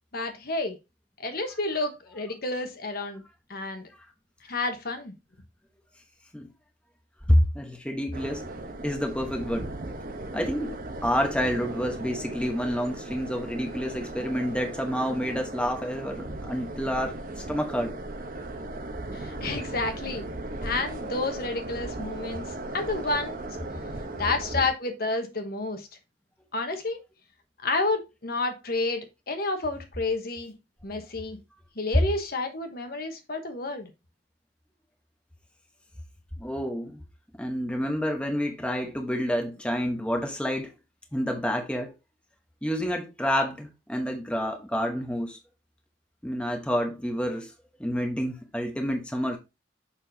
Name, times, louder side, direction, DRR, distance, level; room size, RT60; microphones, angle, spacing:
voice 1, 0.1-0.8 1.2-3.2 3.5-3.9 4.5-5.1 19.1-20.3 20.6-22.5 22.7-23.4 24.2-25.9 26.5-27.0 27.6-30.5 30.8-31.4 31.8-33.9, left 3 dB, 50° left, 1.2 m, -30 dB
voice 2, 7.3-8.5 8.8-9.7 10.3-17.2 17.5-18.0 36.4-37.0 37.4-40.7 41.1-41.9 42.6-45.4 46.2-47.5 47.8-49.4, equal, 5° left, 1.1 m, -28 dB
sound 1, 8.1-24.7, right 2 dB, 50° right, 1.0 m, -37 dB
6.8 x 5.9 x 2.7 m
head